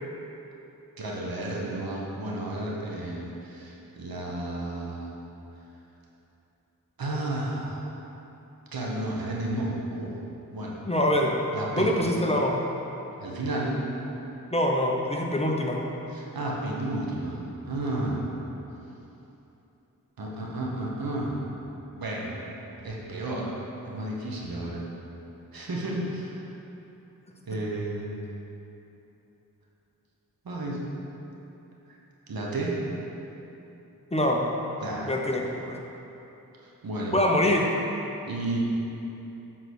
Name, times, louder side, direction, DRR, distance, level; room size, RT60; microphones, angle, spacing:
voice 1, 1.0-5.1 7.0-7.9 8.7-10.2 10.5-10.8 11.5-11.9 13.2-13.8 16.1-18.3 20.2-21.5 22.0-22.4 22.8-23.6 23.9-24.8 25.5-26.4 27.4-28.2 30.4-30.8 32.3-32.8 34.8-35.1 36.6-37.2 38.2-38.6, right 1 dB, 80° right, -3 dB, 1.3 m, -32 dB
voice 2, 10.9-11.3 11.8-12.6 14.5-15.8 34.1-34.5 35.0-35.7 37.1-37.7, left 1 dB, 20° left, 0 dB, 0.9 m, -24 dB
7.5 x 4.0 x 6.3 m, 3.0 s
cardioid pair, 55°, 35 cm